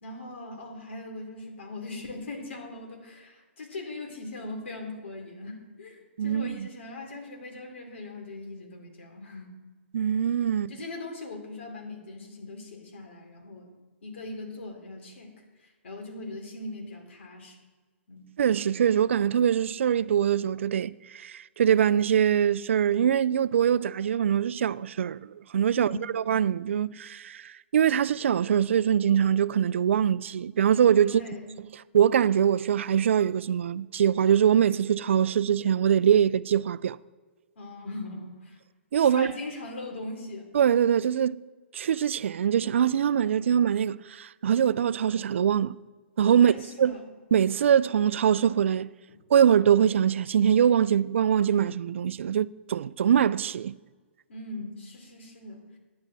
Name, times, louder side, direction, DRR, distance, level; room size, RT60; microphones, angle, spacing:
voice 1, 0.0-9.5 10.7-13.7 14.0-15.3 15.6-17.6 18.1-18.2 25.7-26.1 31.0-31.5 37.6-38.6 39.0-40.5 46.3-47.0 49.1-49.2 54.3-55.8, left 2 dB, 70° left, 3.1 m, -40 dB
voice 2, 6.2-6.7 9.9-10.7 18.4-31.2 31.9-37.0 38.9-39.3 40.5-41.4 41.7-45.8 46.2-47.0 47.3-48.9 49.3-53.7, right 9 dB, 75° right, 0.4 m, -23 dB
10.5 x 10.0 x 4.0 m
hypercardioid pair, 145°, 7 cm